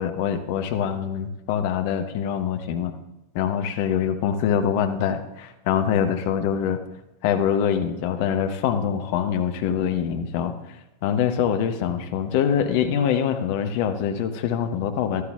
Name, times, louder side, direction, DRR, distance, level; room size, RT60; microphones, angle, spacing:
voice 1, 0.0-2.9 3.3-6.8 7.2-15.2, left 8 dB, 50° left, 8 dB, 0.8 m, -24 dB
13.0 x 13.0 x 2.3 m, 0.93 s
figure-of-eight pair, 90°, 0 cm